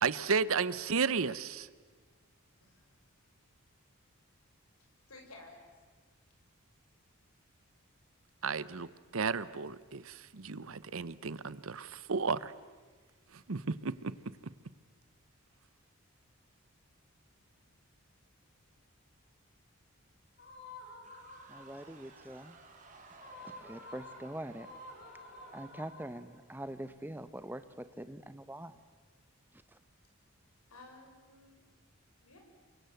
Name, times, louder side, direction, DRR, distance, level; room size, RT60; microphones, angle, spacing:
voice 1, 0.0-1.7 8.4-8.9 9.1-12.5 13.5-14.1 14.4-14.5, right 5 dB, 70° right, 17 dB, 0.8 m, -33 dB
voice 2, 4.8-5.6 30.7-31.6 32.2-32.4, left 2 dB, 85° left, 2 dB, 6.5 m, -54 dB
sound 1, 20.4-22.1 23.1-26.5, left 1 dB, 50° left, 4.1 m, -51 dB
sound 2, 21.0-26.8, right 3 dB, 35° right, 3.3 m, -58 dB
voice 3, 21.5-22.6 23.4-24.7 25.5-28.8 29.5-29.8, right 1 dB, 10° right, 11 dB, 1.0 m, -44 dB
28.5 x 23.5 x 8.0 m, 1.4 s
head